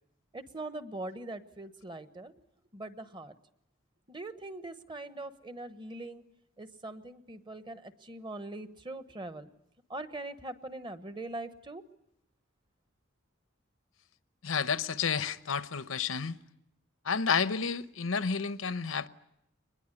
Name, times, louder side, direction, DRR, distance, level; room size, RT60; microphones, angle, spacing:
voice 1, 0.3-2.3 2.7-3.3 4.1-6.2 6.6-9.5 9.9-11.8, right 2 dB, 25° right, 1.1 m, -42 dB
voice 2, 14.4-16.4 17.0-19.1, left 6 dB, 90° left, 0.9 m, -30 dB
24.0 x 21.0 x 9.8 m
head